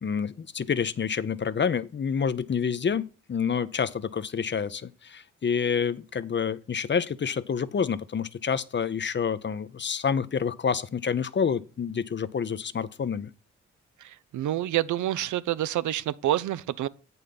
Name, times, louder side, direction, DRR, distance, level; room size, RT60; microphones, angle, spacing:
voice 1, 0.0-3.0 3.3-13.3, left 6 dB, 35° left, 0.6 m, -28 dB
voice 2, 14.3-16.9, right 13 dB, 70° right, 0.5 m, -27 dB
8.2 x 5.5 x 5.7 m
supercardioid pair, 45°, 31 cm